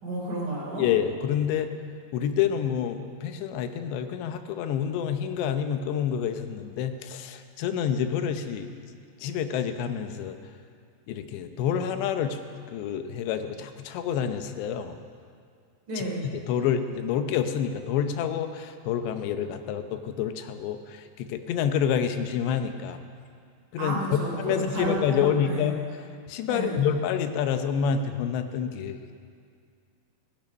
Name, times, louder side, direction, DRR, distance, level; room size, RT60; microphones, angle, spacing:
voice 1, 0.0-0.9 15.9-16.3 23.8-25.8 26.5-26.8, right 1 dB, 50° right, -4 dB, 4.8 m, -31 dB
voice 2, 0.8-1.7 2.1-8.7 9.2-10.4 11.1-12.4 12.7-15.0 16.0-16.1 16.5-23.0 23.7-25.8 26.3-29.1, left 8 dB, 80° left, 8 dB, 3.0 m, -28 dB
16.0 x 16.0 x 5.3 m, 2.2 s
omnidirectional pair, 5.1 m